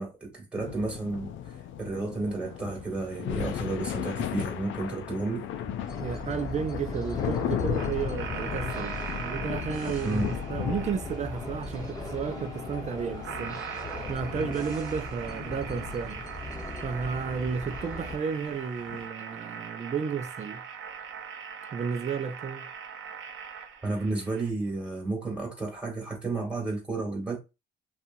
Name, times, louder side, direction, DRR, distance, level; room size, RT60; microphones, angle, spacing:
voice 1, 0.0-5.4 10.0-10.2 23.8-27.4, right 3 dB, 5° right, 1.4 m, -32 dB
sound 1, 0.6-19.1, left 10 dB, 75° left, 0.4 m, -36 dB
sound 2, 5.9-18.2, left 2 dB, 20° left, 1.0 m, -39 dB
voice 2, 6.0-16.2 16.8-20.6 21.7-22.7, right 6 dB, 35° right, 0.5 m, -33 dB
sound 3, 7.8-24.5, right 7 dB, 85° right, 0.7 m, -41 dB
2.8 x 2.4 x 2.6 m
cardioid pair, 90°, 20 cm